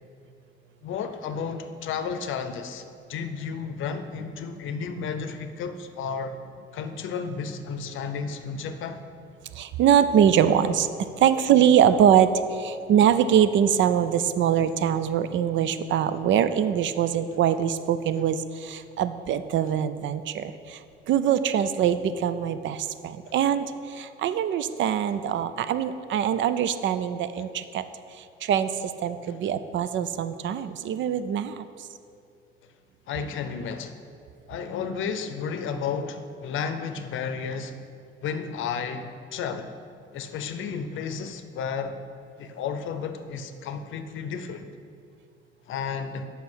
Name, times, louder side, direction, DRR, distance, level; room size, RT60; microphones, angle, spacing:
voice 1, 0.8-2.8 3.1-6.4 6.7-9.0 29.3-29.4 33.1-34.0 34.5-37.8 38.2-39.7 40.1-42.0 42.4-44.7 45.7-46.2, left 6 dB, 70° left, 8 dB, 0.6 m, -32 dB
voice 2, 9.6-10.9 11.2-20.8 21.1-27.8 28.4-28.7 29.0-31.6, right 9 dB, 65° right, 12 dB, 0.5 m, -23 dB
7.5 x 5.6 x 6.2 m, 2.4 s
cardioid pair, 150°, 21 cm